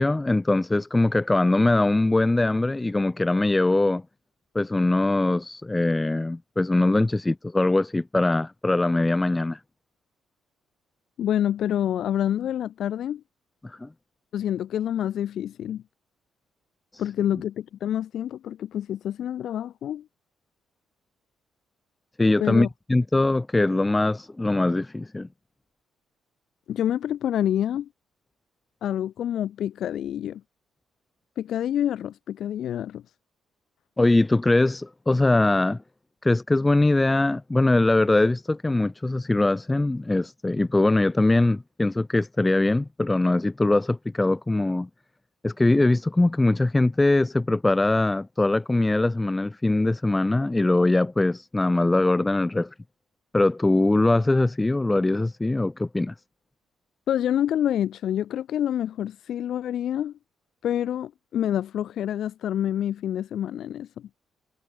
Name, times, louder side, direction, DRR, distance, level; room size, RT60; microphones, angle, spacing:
voice 1, 0.0-4.0 4.5-9.6 13.6-13.9 22.2-25.3 34.0-35.8 36.2-44.9 45.4-52.7 53.3-56.1, left 2 dB, 15° left, 0.8 m, -22 dB
voice 2, 11.2-13.2 14.3-15.8 17.0-20.0 22.4-22.7 26.7-27.9 28.8-30.4 31.4-33.0 57.1-60.1 60.6-64.1, left 10 dB, 70° left, 2.9 m, -27 dB
cardioid pair, 90°, 0 cm